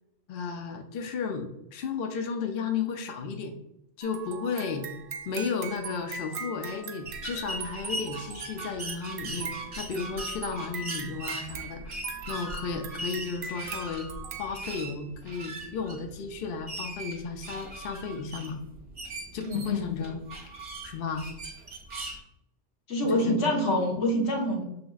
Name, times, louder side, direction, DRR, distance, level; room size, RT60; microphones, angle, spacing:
voice 1, 0.3-3.5 4.0-4.9 5.3-12.0 12.3-14.1 14.4-18.6 19.3-20.2 20.8-21.3 23.0-23.6, left 5 dB, 60° left, 5 dB, 0.7 m, -34 dB
sound 1, 4.0-14.6, right 5 dB, 60° right, 0.7 m, -41 dB
sound 2, 7.0-22.2, right 2 dB, 40° right, 1.0 m, -40 dB
voice 2, 19.4-20.0 22.9-24.6, left 1 dB, 85° left, -1 dB, 1.4 m, -26 dB
6.0 x 3.3 x 2.3 m, 0.83 s
omnidirectional pair, 1.2 m